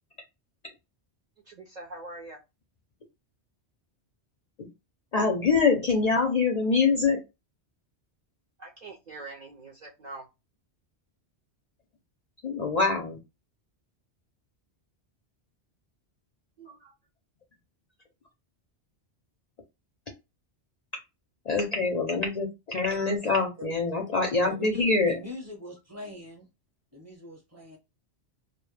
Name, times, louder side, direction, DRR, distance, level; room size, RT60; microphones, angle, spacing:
voice 1, 1.5-2.4 8.6-10.2 16.6-16.9, right 2 dB, 55° right, 0.5 m, -43 dB
voice 2, 5.1-7.2 12.4-13.2 21.4-25.2, left 4 dB, 55° left, 0.5 m, -25 dB
voice 3, 24.5-26.4 26.9-27.8, left 1 dB, 15° right, 0.7 m, -42 dB
2.1 x 2.0 x 3.1 m
omnidirectional pair, 1.1 m